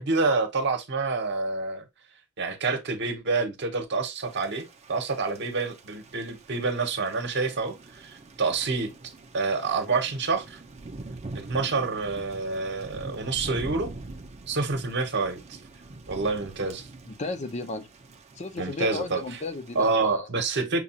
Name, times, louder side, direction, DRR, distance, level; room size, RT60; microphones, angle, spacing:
voice 1, 0.0-1.8 2.4-9.0 9.3-10.6 11.3-13.9 14.5-15.6 16.1-16.9 18.6-19.4 19.7-20.8, right 4 dB, 55° right, 0.9 m, -28 dB
Thunder / Rain, 4.2-19.9, right 2 dB, 30° right, 0.6 m, -44 dB
voice 2, 17.1-17.9 18.4-20.3, left 3 dB, 35° left, 0.5 m, -34 dB
6.1 x 2.3 x 2.8 m
head